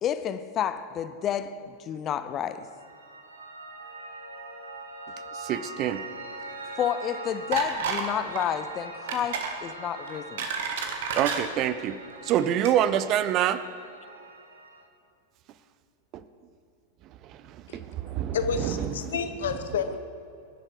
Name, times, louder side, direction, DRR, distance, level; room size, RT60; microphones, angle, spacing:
voice 1, 0.0-2.6 6.8-10.5, left 9 dB, 30° left, 12 dB, 0.8 m, -30 dB
Piano, 2.5-14.9, right 3 dB, 75° right, 1.3 m, -42 dB
voice 2, 5.4-6.0 11.1-13.6 17.3-19.2, right 10 dB, 35° right, 14 dB, 0.6 m, -27 dB
sound 1, 7.5-8.1 8.4-8.6 9.1-9.6 10.1-11.4 12.2-12.3 12.6-12.7, right 6 dB, 55° right, 1.7 m, -30 dB
voice 3, 18.3-20.0, left 6 dB, 60° left, 9 dB, 1.1 m, -30 dB
23.0 x 11.0 x 4.8 m, 2.5 s
figure-of-eight pair, 90°, 0 cm